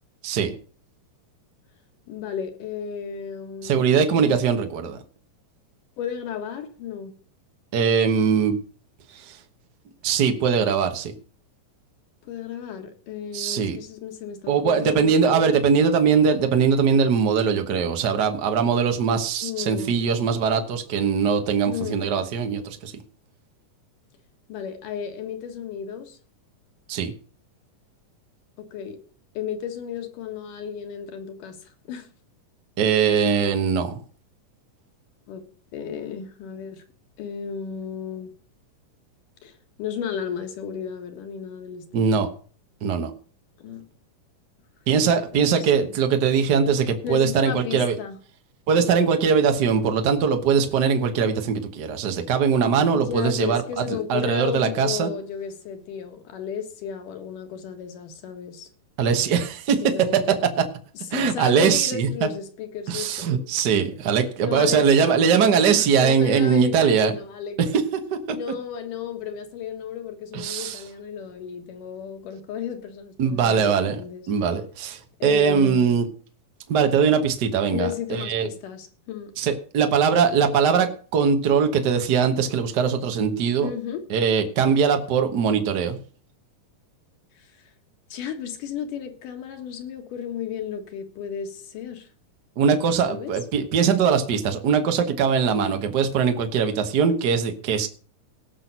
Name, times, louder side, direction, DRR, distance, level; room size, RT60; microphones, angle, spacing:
voice 1, 0.2-0.6 3.6-5.0 7.7-8.5 9.1-9.4 10.0-11.1 13.3-13.8 14.5-22.9 26.9-27.1 32.8-34.0 41.9-42.3 42.8-43.1 44.9-47.9 48.7-55.1 59.0-59.8 60.1-60.2 60.6-60.7 61.1-62.3 62.9-67.1 67.6-67.8 70.3-70.8 73.2-74.0 74.3-76.0 76.7-78.5 79.4-83.7 84.1-86.0 92.6-97.9, right 6 dB, 90° right, 0.9 m, -21 dB
voice 2, 2.1-3.9 4.2-4.4 6.0-7.1 12.2-15.6 19.4-20.0 21.7-22.1 24.5-26.2 28.6-29.0 29.3-31.6 31.9-32.1 35.3-35.5 35.7-36.8 37.2-38.3 39.4-42.2 43.6-43.8 45.3-45.9 47.0-48.2 52.9-58.7 59.8-60.3 61.1-63.4 64.4-67.6 68.3-74.3 75.2-76.0 77.7-79.3 83.6-84.0 87.4-87.5 88.1-92.1 93.1-93.3, left 8 dB, 75° left, 3.1 m, -33 dB
18.5 x 6.2 x 5.4 m
omnidirectional pair, 3.8 m